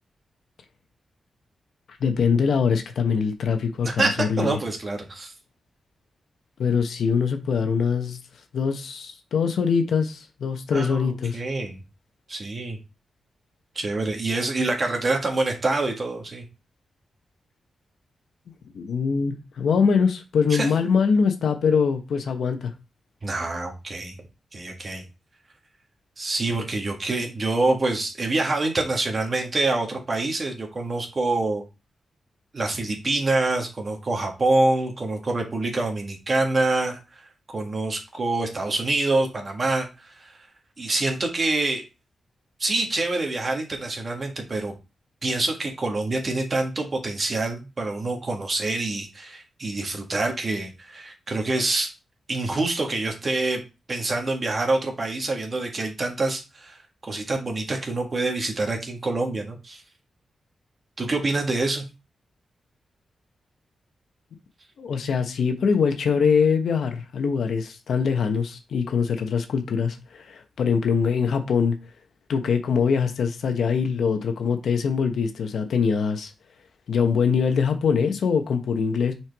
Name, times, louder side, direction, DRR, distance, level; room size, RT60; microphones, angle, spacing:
voice 1, 2.0-4.6 6.6-8.2 8.5-11.4 18.7-22.7 64.8-71.8 72.3-76.3 76.9-79.1, left 6 dB, 80° left, 1.0 m, -23 dB
voice 2, 4.4-5.3 10.7-11.8 12.3-12.8 13.7-16.4 20.5-20.7 23.2-24.1 24.5-25.0 26.2-31.6 32.5-37.2 37.5-40.4 40.8-41.8 42.6-44.7 45.2-51.9 52.3-53.6 53.9-59.8 61.0-61.8, right 2 dB, 40° right, 1.7 m, -26 dB
6.0 x 4.5 x 3.5 m
cardioid pair, 90°, 0 cm